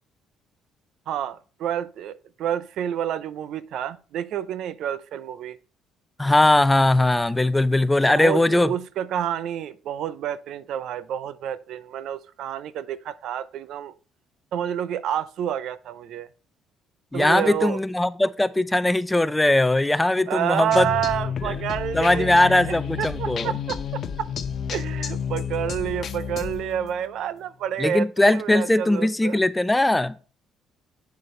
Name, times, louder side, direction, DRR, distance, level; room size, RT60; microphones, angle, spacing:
voice 1, 1.1-5.6 8.1-13.9 14.5-16.3 17.1-17.8 20.3-24.3 24.7-29.4, right 10 dB, 70° right, 0.5 m, -29 dB
voice 2, 6.2-8.7 17.1-20.9 21.4-21.6 21.9-23.5 27.8-30.1, left 1 dB, 10° left, 0.6 m, -20 dB
sound 1, 20.7-27.2, left 7 dB, 55° left, 0.7 m, -31 dB
8.2 x 6.7 x 3.2 m
supercardioid pair, 70°, 0 cm